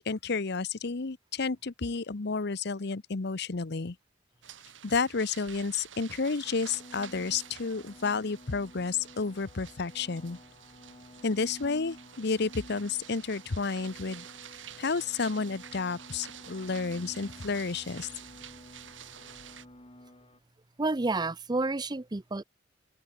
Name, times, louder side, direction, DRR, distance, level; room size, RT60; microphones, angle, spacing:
voice 1, 0.0-3.9 4.8-10.4 11.2-14.2 14.8-18.1, left 4 dB, 60° left, 0.9 m, -31 dB
sound 1, 4.4-19.7, right 9 dB, 80° right, 2.0 m, -50 dB
sound 2, 5.3-5.8 6.9-20.6, equal, 5° right, 5.1 m, -64 dB
sound 3, 6.4-20.4, left 1 dB, 30° left, 7.7 m, -52 dB
voice 2, 20.8-22.4, right 2 dB, 20° right, 0.7 m, -30 dB
open air
head